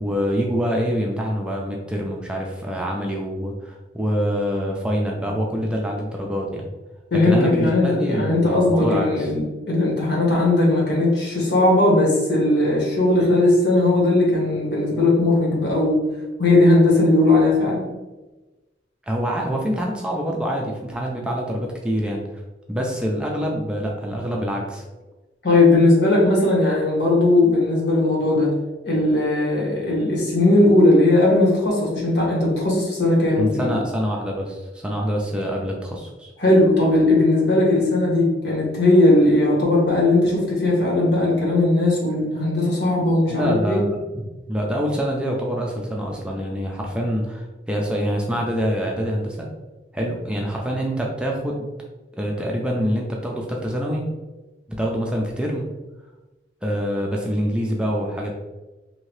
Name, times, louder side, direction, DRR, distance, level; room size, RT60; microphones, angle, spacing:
voice 1, 0.0-6.7 7.1-9.3 19.1-22.2 22.7-24.8 33.4-36.3 43.3-49.5 49.9-51.7 52.1-54.1 54.8-55.7 56.6-58.3, equal, 5° right, -1 dB, 0.4 m, -25 dB
voice 2, 7.1-16.0 16.4-17.9 25.4-28.5 28.8-33.8 36.4-43.8, left 2 dB, 75° left, -3 dB, 1.1 m, -18 dB
2.8 x 2.7 x 3.1 m, 1.1 s
head